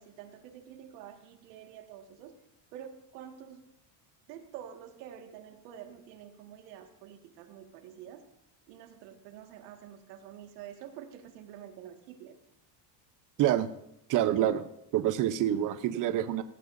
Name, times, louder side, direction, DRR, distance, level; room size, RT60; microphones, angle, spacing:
voice 1, 0.0-2.4 2.7-3.7 4.2-8.3 8.7-12.4, right 9 dB, 80° right, 5 dB, 1.9 m, -48 dB
voice 2, 14.1-14.6 14.9-16.4, right 11 dB, 40° right, 11 dB, 0.8 m, -27 dB
17.5 x 14.5 x 2.7 m, 0.78 s
cardioid pair, 135°, 49 cm